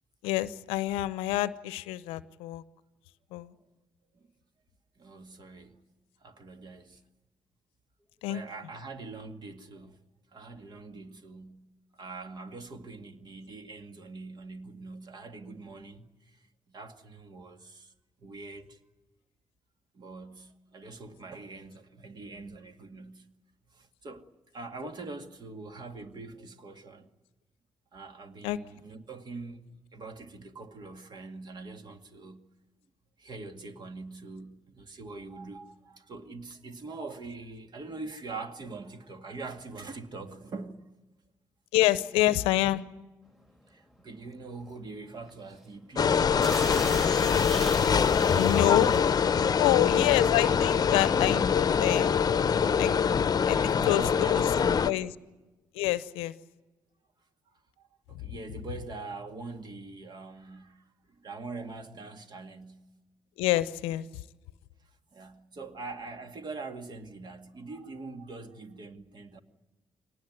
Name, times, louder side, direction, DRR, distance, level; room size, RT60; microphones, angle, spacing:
voice 1, 0.2-2.6 3.3-3.5 8.2-8.4 28.4-28.6 41.7-42.8 48.3-49.0 49.6-52.2 52.8-53.0 53.5-54.5 54.8-55.1 55.7-56.3 63.4-64.1, left 15 dB, 85° left, 0.7 m, -27 dB
voice 2, 5.0-5.8 6.2-7.0 8.3-10.0 10.3-11.7 12.0-17.9 18.2-18.8 19.9-23.3 23.7-27.1 27.9-32.5 33.2-40.9 43.7-46.7 50.6-50.8 53.4-54.9 57.8-62.9 65.1-69.4, right 3 dB, 50° right, 2.2 m, -43 dB
sound 1, 43.4-43.7 44.1-44.3 44.6-44.8 45.3-45.6 46.0-46.1 46.4-49.2 50.0-50.2 50.4-51.6, left 1 dB, ahead, 2.2 m, -38 dB
sound 2, 46.0-54.9, left 7 dB, 45° left, 0.8 m, -24 dB
23.5 x 19.0 x 9.5 m
hypercardioid pair, 50°, 9 cm